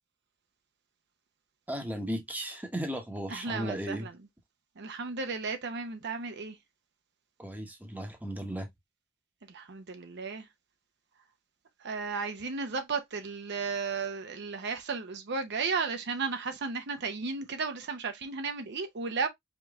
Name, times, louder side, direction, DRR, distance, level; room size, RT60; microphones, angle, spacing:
voice 1, 1.7-4.1 7.4-8.7, equal, 10° right, 1.0 m, -35 dB
voice 2, 3.3-4.1 4.8-6.6 9.5-10.5 11.8-19.3, right 4 dB, 55° right, 0.7 m, -34 dB
5.1 x 3.0 x 2.3 m
head